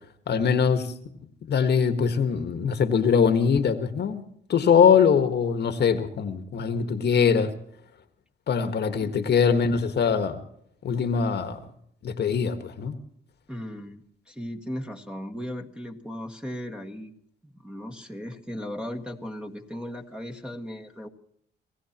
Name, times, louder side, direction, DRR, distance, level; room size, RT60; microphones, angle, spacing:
voice 1, 0.3-0.9 1.4-4.2 4.5-7.5 8.5-10.4 10.8-11.6 12.0-13.0, left 6 dB, 55° left, 1.5 m, -22 dB
voice 2, 13.5-17.1 17.4-21.1, equal, 5° right, 1.8 m, -37 dB
28.5 x 16.5 x 3.0 m
cardioid pair, 90°, 20 cm